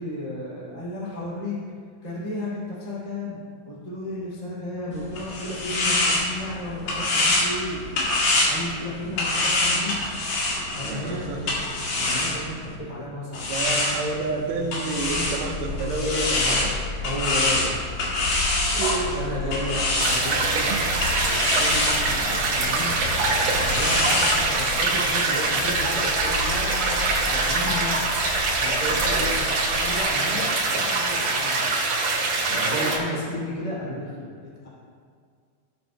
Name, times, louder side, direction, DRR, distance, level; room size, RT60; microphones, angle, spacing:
voice 1, 0.0-1.6 2.0-3.4 3.6-7.8 8.5-10.0 10.7-11.2 11.9-13.5 16.3-16.6 17.0-17.8 18.8-20.8 21.2-28.1 28.6-31.7 32.2-34.7, left 1 dB, 15° left, -7 dB, 1.7 m, -33 dB
sound 1, 4.9-12.8 13.3-24.4, left 2 dB, 55° left, 3.1 m, -26 dB
voice 2, 10.8-11.9 13.4-16.7 18.6-20.1 20.4-21.3 21.6-21.7 28.8-29.3 32.5-33.0, right 3 dB, 85° right, 0 dB, 1.9 m, -31 dB
sound 2, 15.0-30.0, left 3 dB, 75° left, 2.7 m, -35 dB
sound 3, 20.0-33.0, right 3 dB, 55° right, 3.0 m, -24 dB
18.0 x 7.8 x 2.2 m, 2.1 s
omnidirectional pair, 5.1 m